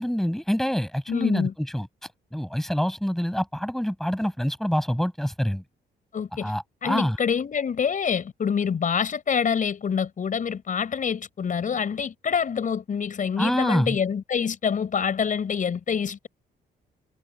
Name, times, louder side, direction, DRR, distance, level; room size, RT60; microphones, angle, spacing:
voice 1, 0.0-5.6 6.4-7.2 13.4-14.0, equal, ahead, 6.4 m, -26 dB
voice 2, 1.1-1.5 6.1-6.5 6.8-16.3, left 7 dB, 45° left, 5.9 m, -26 dB
cardioid pair, 110°, 18 cm